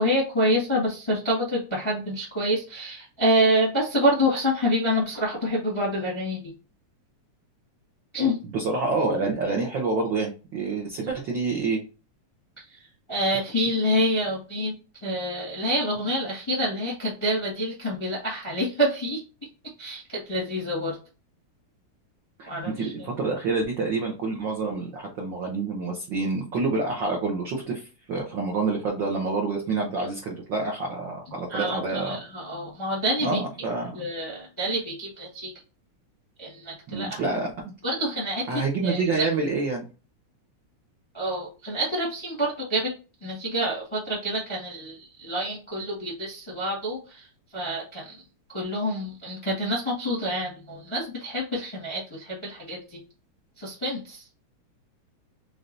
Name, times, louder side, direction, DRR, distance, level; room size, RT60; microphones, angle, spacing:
voice 1, 0.0-6.5 8.1-8.4 13.1-14.7 15.0-19.2 19.8-21.0 22.5-22.9 31.5-33.4 33.9-35.5 36.4-37.2 37.8-39.0 41.1-42.9 43.2-47.3 47.5-48.2 48.5-53.0 53.6-54.2, equal, 20° left, -3 dB, 0.7 m, -27 dB
voice 2, 8.2-11.8 22.4-22.5 22.7-32.2 33.2-34.0 36.9-37.7 38.5-39.9, right 3 dB, 80° right, 0 dB, 1.0 m, -27 dB
5.5 x 3.3 x 2.6 m, 0.33 s
omnidirectional pair, 3.5 m